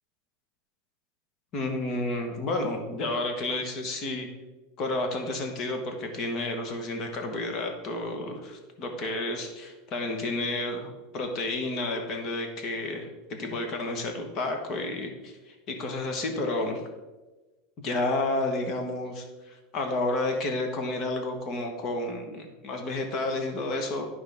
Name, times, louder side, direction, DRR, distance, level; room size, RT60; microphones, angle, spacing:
voice 1, 1.5-4.3 4.8-16.8 17.8-24.1, left 2 dB, 35° left, 4 dB, 1.2 m, -31 dB
11.5 x 5.4 x 3.5 m, 1.2 s
supercardioid pair, 165°, 0 cm